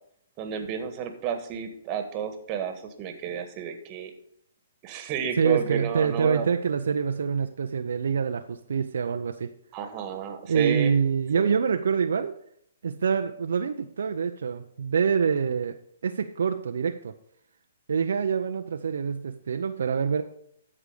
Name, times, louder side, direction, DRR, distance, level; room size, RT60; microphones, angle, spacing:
voice 1, 0.4-4.1 4.8-6.5 9.7-10.9 11.3-11.6, right 8 dB, 35° right, 7 dB, 1.5 m, -31 dB
voice 2, 5.4-9.5 10.5-12.3 12.8-15.8 16.0-17.1 17.9-20.2, right 6 dB, 70° right, 6 dB, 0.6 m, -26 dB
13.0 x 4.9 x 4.9 m, 0.69 s
hypercardioid pair, 135°, 0 cm